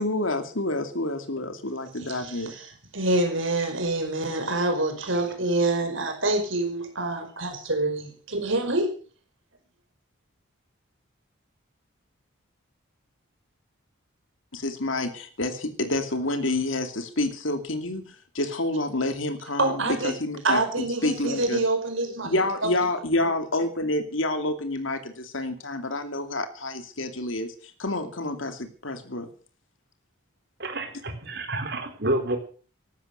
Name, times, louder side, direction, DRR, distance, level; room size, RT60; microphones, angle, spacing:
voice 1, 0.0-2.5 14.5-21.6 22.2-29.3, left 2 dB, 70° left, 7 dB, 2.6 m, -28 dB
voice 2, 2.0-8.9 19.6-20.2 20.4-22.7, right 2 dB, 70° right, 6 dB, 5.2 m, -26 dB
voice 3, 30.6-32.4, right 1 dB, 50° right, 6 dB, 4.1 m, -29 dB
15.0 x 13.0 x 6.7 m, 0.40 s
head